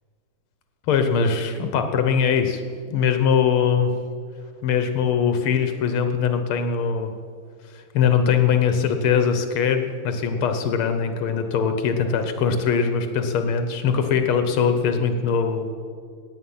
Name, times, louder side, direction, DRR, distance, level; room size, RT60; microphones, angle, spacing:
voice 1, 0.9-2.6 2.9-3.9 4.6-7.1 7.9-15.7, left 6 dB, 85° left, 7 dB, 1.9 m, -21 dB
18.5 x 8.0 x 5.6 m, 2.1 s
omnidirectional pair, 2.3 m